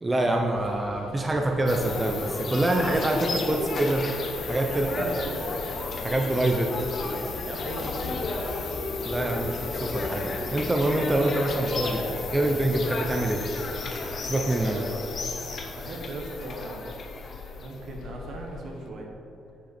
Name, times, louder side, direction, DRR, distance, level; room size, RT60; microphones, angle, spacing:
voice 1, 0.0-4.0 4.5-5.1 6.0-6.9 9.1-10.2 10.5-12.0 12.3-13.4 14.2-14.8, right 1 dB, 20° right, 2 dB, 0.7 m, -25 dB
sound 1, 0.5-18.9, left 5 dB, 75° left, 0.6 m, -42 dB
sound 2, 1.7-17.7, left 3 dB, 50° left, 1.1 m, -33 dB
sound 3, 2.8-16.0, left 1 dB, 25° left, 1.0 m, -47 dB
voice 2, 4.7-5.6 7.5-8.3 10.5-10.6 14.6-15.1 15.7-16.9 17.6-19.1, right 2 dB, 65° right, 0 dB, 1.5 m, -38 dB
10.0 x 5.6 x 4.3 m, 2.9 s
cardioid pair, 90°, 0 cm